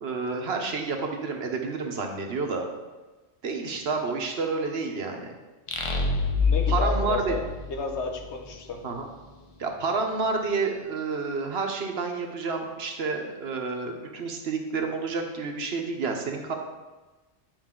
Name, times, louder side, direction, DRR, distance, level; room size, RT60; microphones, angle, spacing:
voice 1, 0.0-2.7 3.4-5.3 6.7-7.4 8.8-9.1 9.6-16.5, right 4 dB, 70° right, 3 dB, 1.2 m, -29 dB
sound 1, 5.7-8.3, left 4 dB, 35° left, 0.7 m, -26 dB
voice 2, 6.4-7.4 7.7-8.8, left 4 dB, 80° left, 4 dB, 1.2 m, -32 dB
9.1 x 5.2 x 3.7 m, 1.2 s
omnidirectional pair, 1.1 m